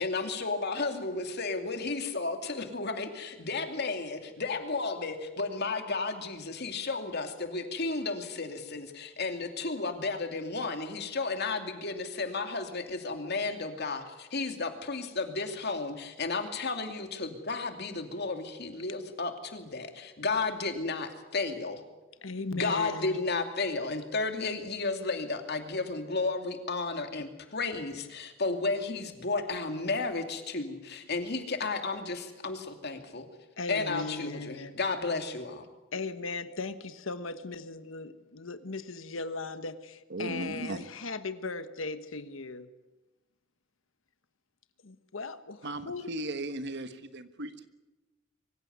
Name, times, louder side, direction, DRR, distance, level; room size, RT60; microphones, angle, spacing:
voice 1, 0.0-21.8 22.5-33.3 33.7-35.7, left 3 dB, 55° left, 6 dB, 2.6 m, -33 dB
voice 2, 22.2-23.2 33.6-34.7 35.9-42.7 44.8-46.3, left 3 dB, 70° left, 11 dB, 1.2 m, -38 dB
voice 3, 40.1-40.8 45.6-47.7, right 2 dB, 55° right, 10 dB, 1.4 m, -37 dB
24.0 x 15.5 x 9.4 m, 1.1 s
head